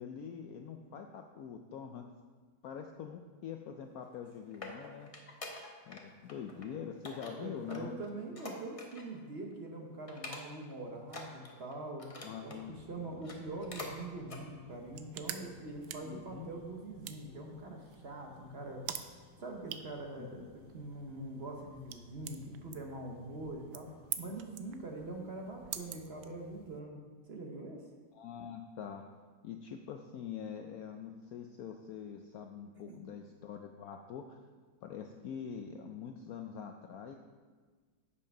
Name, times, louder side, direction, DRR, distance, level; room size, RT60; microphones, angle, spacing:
voice 1, 0.0-2.0 2.6-5.1 5.9-8.0 12.2-12.8 16.0-16.5 20.2-20.5 28.1-29.0 29.4-34.4 34.8-37.2, left 7 dB, 75° left, 4 dB, 0.8 m, -44 dB
sound 1, 4.1-6.0 6.3-6.7 7.0-9.2 9.5-9.7 10.1-10.7 11.0-12.6 13.1-14.0 14.2-14.4 14.9-15.0, left 2 dB, 35° left, 0.5 m, -46 dB
voice 2, 7.2-12.1 12.4-18.9 19.4-20.4 20.7-27.0 27.3-27.8 32.9-33.0, right 2 dB, 45° right, 1 dB, 0.8 m, -43 dB
sound 2, 12.5-26.6, left 3 dB, 60° left, 1.3 m, -60 dB
sound 3, 14.7-26.8, right 11 dB, 85° right, 1.3 m, -48 dB
7.6 x 6.7 x 5.3 m, 1.4 s
omnidirectional pair, 2.0 m